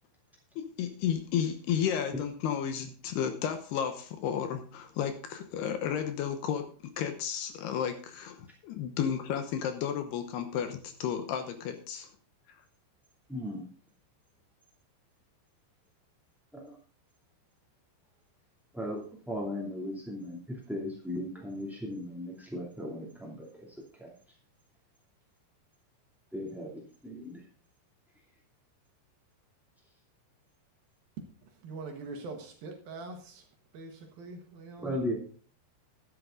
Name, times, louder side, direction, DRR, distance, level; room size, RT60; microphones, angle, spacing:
voice 1, 0.6-12.1, left 8 dB, 70° left, 2.8 m, -33 dB
voice 2, 13.3-13.6 16.5-16.7 18.7-23.7 24.0-24.1 26.3-27.4 34.8-35.2, left 1 dB, ahead, 0.7 m, -37 dB
voice 3, 31.6-33.4 33.7-35.0, right 3 dB, 60° right, 2.9 m, -43 dB
12.5 x 10.5 x 3.8 m
omnidirectional pair, 5.3 m